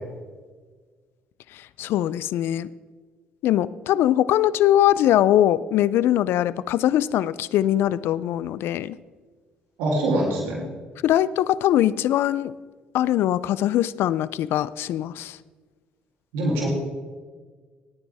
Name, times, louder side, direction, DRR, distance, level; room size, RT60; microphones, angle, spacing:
voice 1, 1.5-2.7 3.4-9.0 11.0-12.5 12.9-15.4, left 12 dB, 70° left, 18 dB, 0.4 m, -22 dB
voice 2, 9.8-10.6 16.3-16.7, right 1 dB, 85° right, -3 dB, 3.2 m, -23 dB
17.5 x 9.5 x 3.5 m, 1.4 s
supercardioid pair, 70°, 4 cm